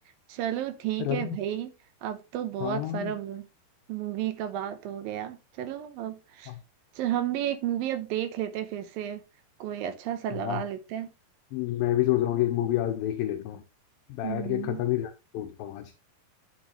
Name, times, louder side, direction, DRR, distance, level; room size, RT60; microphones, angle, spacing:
voice 1, 0.3-1.7 2.0-3.4 3.9-6.5 7.0-9.2 9.6-11.1 14.2-14.8, right 11 dB, 80° right, 2.2 m, -32 dB
voice 2, 1.0-1.4 2.6-3.1 6.5-6.6 10.3-10.6 11.5-13.6 14.1-15.9, left 13 dB, 75° left, 2.2 m, -29 dB
10.0 x 7.0 x 3.0 m
omnidirectional pair, 4.9 m